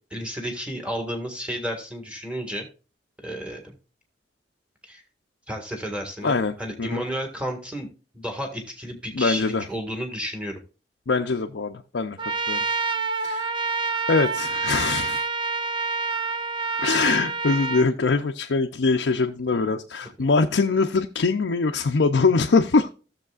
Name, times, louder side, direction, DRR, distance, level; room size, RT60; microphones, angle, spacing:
voice 1, 0.1-2.7 3.2-3.7 4.8-5.0 5.5-7.9 8.1-10.6, equal, 5° right, 3 dB, 1.7 m, -32 dB
voice 2, 6.2-7.0 9.1-9.6 11.1-12.6 13.2-13.5 14.1-15.3 16.8-22.9, left 4 dB, 85° left, 4 dB, 0.6 m, -23 dB
Trumpet, 12.2-17.9, right 4 dB, 30° right, 0.5 m, -27 dB
15.0 x 6.9 x 2.4 m, 0.36 s
head